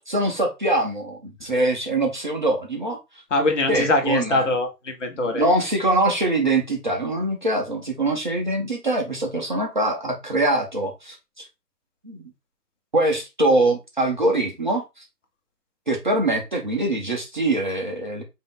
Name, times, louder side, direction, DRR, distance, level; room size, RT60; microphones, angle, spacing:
voice 1, 0.1-3.0 3.7-4.5 5.3-11.4 12.0-12.3 12.9-14.8 15.9-18.2, right 2 dB, 30° right, 1 dB, 0.6 m, -23 dB
voice 2, 3.3-5.4, left 2 dB, 50° left, 4 dB, 1.1 m, -23 dB
4.9 x 2.7 x 3.6 m, 0.23 s
figure-of-eight pair, 140°, 48 cm